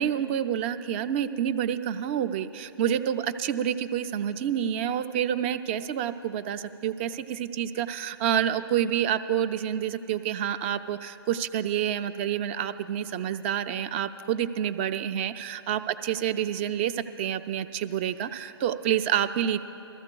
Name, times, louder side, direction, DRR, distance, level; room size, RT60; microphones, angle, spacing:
voice 1, 0.0-19.6, right 9 dB, 25° right, 11 dB, 0.3 m, -28 dB
21.5 x 14.5 x 2.3 m, 2.8 s
hypercardioid pair, 145°, 14 cm